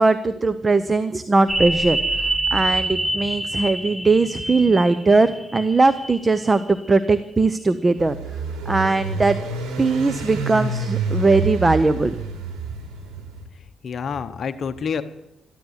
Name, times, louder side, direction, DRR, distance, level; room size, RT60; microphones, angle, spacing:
voice 1, 0.0-8.2 8.7-9.4 9.8-12.2, right 3 dB, 25° right, 12 dB, 0.8 m, -19 dB
sound 1, 1.5-6.8 7.1-7.2, right 1 dB, 5° right, 1.0 m, -26 dB
sound 2, 8.0-13.4, right 4 dB, 90° right, 3.3 m, -28 dB
voice 2, 13.5-15.0, left 6 dB, 50° left, 10 dB, 0.9 m, -28 dB
14.0 x 12.5 x 8.1 m, 0.92 s
cardioid pair, 90°, 0 cm